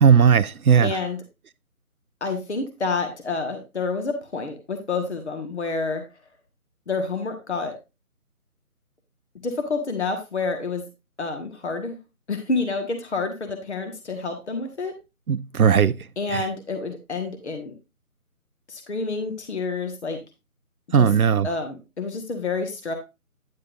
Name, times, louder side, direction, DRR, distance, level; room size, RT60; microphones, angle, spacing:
voice 1, 0.0-1.0 15.3-16.1 16.3-16.5 20.9-21.5, right 7 dB, 75° right, 0.7 m, -17 dB
voice 2, 0.8-1.2 2.2-6.0 6.9-7.7 9.4-10.8 11.2-11.9 12.3-14.9 16.2-17.7 18.7-20.2 20.9-21.1 21.4-22.9, left 3 dB, 50° left, 1.6 m, -28 dB
9.9 x 8.1 x 2.5 m
figure-of-eight pair, 170°, 44 cm